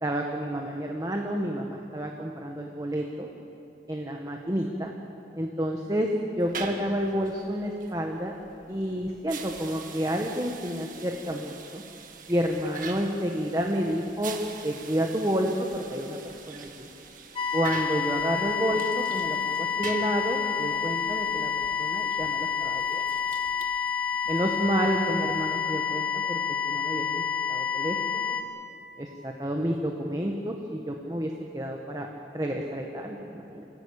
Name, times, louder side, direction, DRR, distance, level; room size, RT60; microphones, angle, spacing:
voice 1, 0.0-3.3 3.9-4.9 5.4-8.3 8.7-11.8 12.3-14.4 14.6-16.9 17.5-23.0 24.3-26.4 26.7-27.2 27.5-28.4 29.0-32.1 32.3-33.7, equal, 20° right, 1 dB, 1.4 m, -30 dB
sound 1, 6.4-26.0, right 5 dB, 50° right, 1.7 m, -44 dB
sound 2, 17.4-28.4, left 7 dB, 30° left, 1.4 m, -29 dB
27.5 x 16.5 x 8.7 m, 2.9 s
head